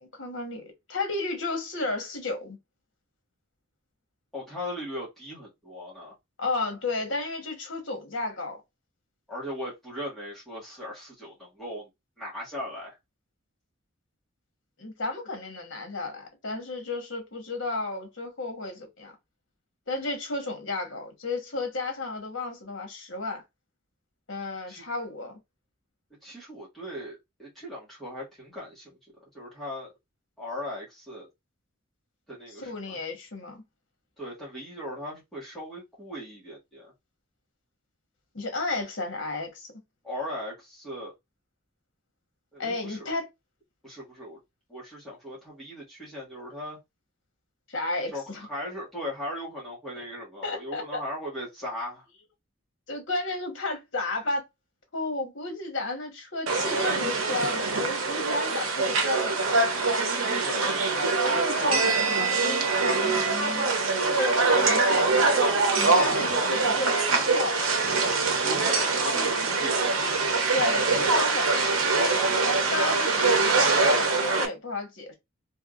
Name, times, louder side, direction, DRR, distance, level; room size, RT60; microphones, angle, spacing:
voice 1, 0.0-2.6 6.4-8.6 14.8-19.1 19.9-23.4 24.3-25.4 32.6-33.6 38.3-39.7 42.6-43.3 47.7-48.5 50.0-50.1 50.4-51.0 52.9-54.4 54.9-59.6 61.2-63.7 64.1-67.7 70.5-75.1, left 2 dB, 60° left, 1.2 m, -33 dB
voice 2, 4.3-6.1 9.3-11.9 12.2-12.9 24.7-24.8 26.2-29.0 29.3-29.9 30.4-31.3 32.3-33.0 34.2-36.9 40.0-41.1 42.5-43.1 43.8-44.4 44.7-46.8 48.1-48.2 48.5-52.0 60.4-60.7 61.6-61.9 68.4-70.3, left 1 dB, ahead, 1.4 m, -38 dB
sound 1, 56.5-74.5, right 3 dB, 80° right, 0.8 m, -24 dB
3.4 x 2.8 x 2.4 m
head